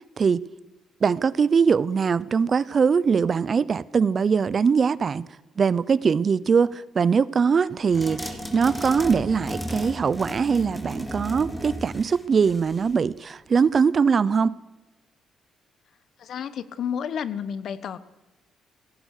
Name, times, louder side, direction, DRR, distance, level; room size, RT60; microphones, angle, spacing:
voice 1, 1.0-5.3 5.6-14.6, right 6 dB, 45° right, 0.6 m, -22 dB
sound 1, 7.9-13.0, equal, 5° left, 2.8 m, -34 dB
voice 2, 16.2-18.0, left 8 dB, 65° left, 1.2 m, -31 dB
26.5 x 17.5 x 6.6 m
cardioid pair, 90°, 0 cm